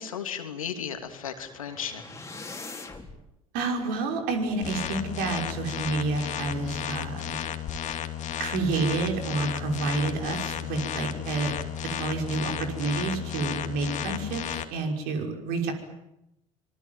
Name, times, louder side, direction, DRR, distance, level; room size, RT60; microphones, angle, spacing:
voice 1, 0.0-2.0, left 8 dB, 85° left, 7 dB, 3.0 m, -35 dB
sound 1, 1.0-3.2, left 3 dB, 15° left, 4.4 m, -42 dB
voice 2, 3.5-7.4 8.4-11.5 12.0-15.7, right 3 dB, 60° right, 4 dB, 5.8 m, -29 dB
sound 2, 4.6-14.6, left 10 dB, 45° left, 2.6 m, -33 dB
25.0 x 23.0 x 9.3 m, 0.88 s
hypercardioid pair, 70°, 17 cm